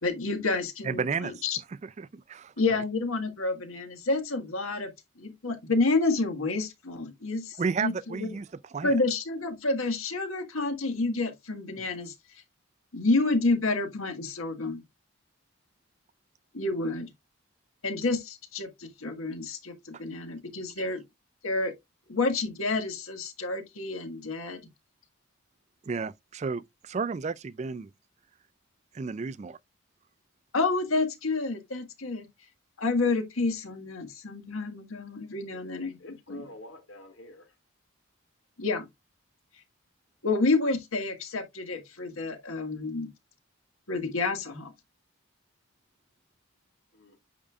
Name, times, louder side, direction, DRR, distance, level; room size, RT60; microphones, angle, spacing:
voice 1, 0.0-1.6 2.6-4.9 5.2-8.3 8.8-12.1 12.9-14.8 16.5-17.1 17.8-21.0 21.4-21.7 22.1-24.6 30.5-32.2 32.8-36.0 36.3-36.4 38.6-38.8 40.2-43.1 43.9-44.7, left 3 dB, 85° left, 1.7 m, -29 dB
voice 2, 0.8-1.3 1.8-2.5 7.6-8.5 8.7-8.9 20.8-20.9 25.9-27.9 28.9-29.6, right 5 dB, 35° right, 0.3 m, -32 dB
voice 3, 35.5-37.5 46.9-47.2, left 2 dB, 65° left, 2.0 m, -48 dB
8.7 x 5.3 x 2.3 m
head